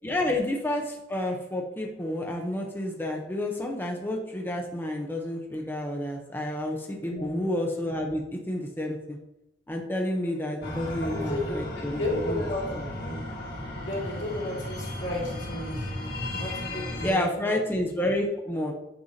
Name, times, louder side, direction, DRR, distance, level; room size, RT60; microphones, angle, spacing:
voice 1, 0.0-9.2 9.7-12.4 12.7-12.8 17.0-18.7, left 1 dB, 10° left, 0 dB, 0.7 m, -30 dB
voice 2, 7.1-7.4 11.0-12.6 13.0-13.2 13.8-15.9 16.4-17.5, left 1 dB, 90° left, -4 dB, 2.3 m, -33 dB
sound 1, 10.6-17.1, left 1 dB, 60° left, 2.0 m, -35 dB
7.9 x 5.4 x 2.7 m, 0.87 s
head